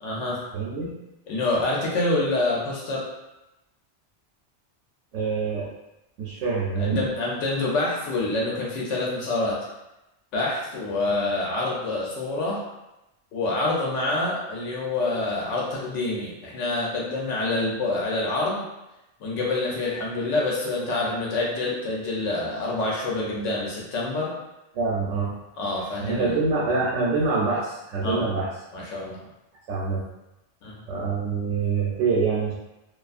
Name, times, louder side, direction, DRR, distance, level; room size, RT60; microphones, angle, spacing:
voice 1, 0.0-0.4 1.3-3.1 6.8-9.6 10.3-12.6 13.3-18.6 19.2-24.4 25.6-26.4 28.0-28.2 28.7-29.2 30.6-30.8, left 2 dB, 90° left, -3 dB, 1.0 m, -27 dB
voice 2, 0.5-0.9 5.1-5.7 6.2-7.1 24.7-25.3 26.0-28.5 29.7-30.0 30.9-32.5, right 4 dB, 90° right, -6 dB, 0.9 m, -25 dB
2.4 x 2.4 x 2.4 m, 0.96 s
omnidirectional pair, 1.2 m